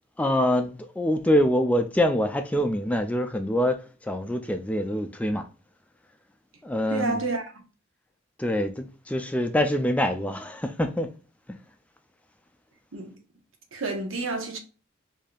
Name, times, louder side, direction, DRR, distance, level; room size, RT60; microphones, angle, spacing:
voice 1, 0.2-5.5 6.6-7.2 8.4-11.1, equal, 5° left, 0.3 m, -25 dB
voice 2, 6.9-7.4 12.9-13.1 13.7-14.6, right 3 dB, 80° right, 0.9 m, -29 dB
4.9 x 2.7 x 2.3 m
head